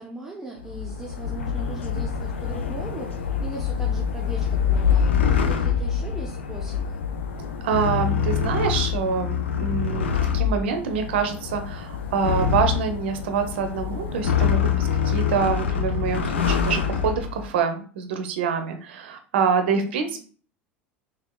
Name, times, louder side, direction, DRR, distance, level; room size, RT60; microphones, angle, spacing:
voice 1, 0.0-7.0 19.7-20.2, right 2 dB, 5° right, -3 dB, 0.7 m, -39 dB
sound 1, 0.6-17.5, left 7 dB, 80° left, 0.4 m, -25 dB
voice 2, 7.6-10.1 10.3-20.2, right 6 dB, 70° right, 7 dB, 0.6 m, -26 dB
3.4 x 3.4 x 2.3 m, 0.42 s
hypercardioid pair, 75°, 6 cm